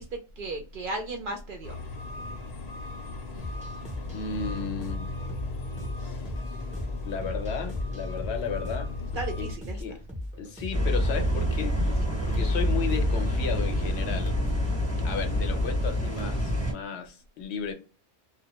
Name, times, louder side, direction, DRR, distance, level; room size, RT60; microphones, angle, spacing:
voice 1, 0.0-1.8 9.2-9.8, right 2 dB, 60° right, 0.6 m, -35 dB
sound 1, 1.6-9.5, left 3 dB, 55° left, 0.4 m, -36 dB
sound 2, 3.4-11.0, left 1 dB, 10° right, 0.4 m, -39 dB
voice 2, 4.1-5.1 7.0-8.9 9.4-9.5 9.8-10.0 10.4-14.4 15.0-17.7, left 6 dB, 70° left, 0.8 m, -34 dB
sound 3, 10.7-16.7, left 1 dB, 25° right, 0.8 m, -26 dB
2.2 x 2.1 x 2.9 m
omnidirectional pair, 1.2 m